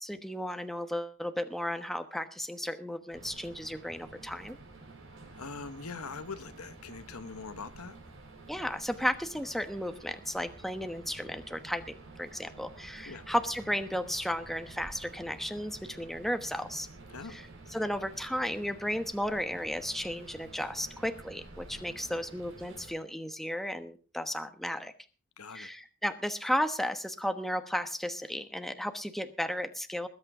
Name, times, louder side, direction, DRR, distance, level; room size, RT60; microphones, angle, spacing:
voice 1, 0.0-4.6 8.5-16.9 17.3-17.4 17.7-24.9 25.5-30.1, equal, ahead, 1.1 m, -34 dB
sound 1, 3.1-22.9, right 2 dB, 65° right, 6.0 m, -50 dB
voice 2, 5.3-8.0 13.1-13.3 17.1-17.4 25.4-25.7, left 4 dB, 85° left, 1.3 m, -42 dB
20.5 x 8.8 x 4.9 m
head